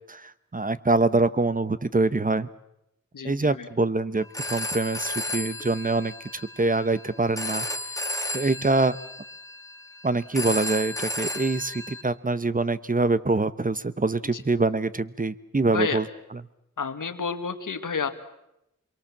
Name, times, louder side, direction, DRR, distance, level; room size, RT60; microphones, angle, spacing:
voice 1, 0.1-2.5 3.2-7.7 7.9-8.0 8.3-9.0 10.0-16.0, right 3 dB, 25° right, 15 dB, 1.0 m, -25 dB
voice 2, 3.1-3.7 14.3-14.4 15.7-16.0 16.8-18.1, left 5 dB, 85° left, 8 dB, 1.9 m, -30 dB
Telephone, 4.2-12.0, left 1 dB, 10° left, 2.0 m, -34 dB
26.0 x 23.0 x 7.4 m, 0.85 s
wide cardioid pair, 70°, 31 cm